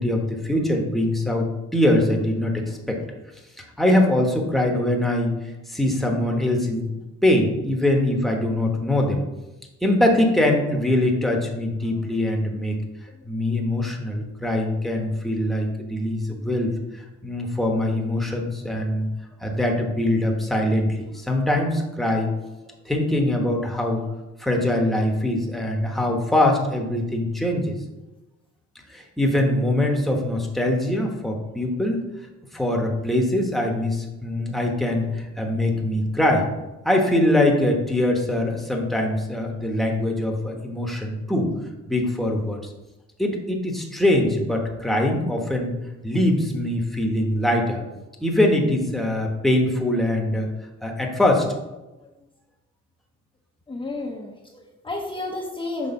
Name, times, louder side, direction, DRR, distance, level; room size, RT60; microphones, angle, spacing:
voice 1, 0.0-3.0 3.6-5.3 5.7-6.9 7.2-9.2 9.8-12.8 13.2-19.1 19.4-22.3 22.8-24.0 24.4-27.8 28.9-32.0 32.5-36.5 36.8-41.5 41.9-42.7 43.2-45.7 46.0-47.8 48.2-50.5 50.8-51.4, left 1 dB, ahead, 1 dB, 1.2 m, -23 dB
voice 2, 53.7-55.9, left 2 dB, 15° left, -3 dB, 0.9 m, -31 dB
6.2 x 3.2 x 5.4 m, 1.0 s
cardioid pair, 90°, 30 cm